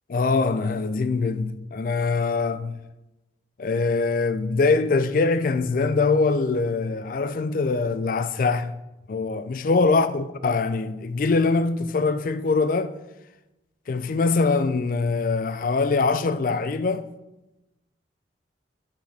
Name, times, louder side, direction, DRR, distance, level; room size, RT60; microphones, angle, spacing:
voice 1, 0.1-2.8 3.6-8.8 9.1-12.9 13.9-17.1, left 4 dB, 45° left, 0.3 m, -23 dB
8.0 x 5.0 x 3.4 m
head